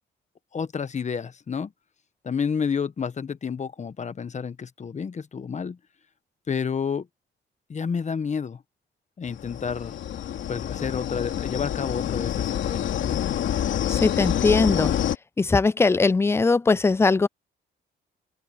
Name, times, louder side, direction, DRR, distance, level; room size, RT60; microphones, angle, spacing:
voice 1, 0.5-1.7 2.2-5.8 6.5-7.1 7.7-8.6 9.2-10.0 10.5-13.2, left 6 dB, 35° left, 1.3 m, -30 dB
sound 1, 9.3-15.2, left 10 dB, 70° left, 3.0 m, -27 dB
voice 2, 13.9-14.9 15.4-17.3, left 4 dB, 15° left, 0.4 m, -20 dB
open air
cardioid pair, 90°, 20 cm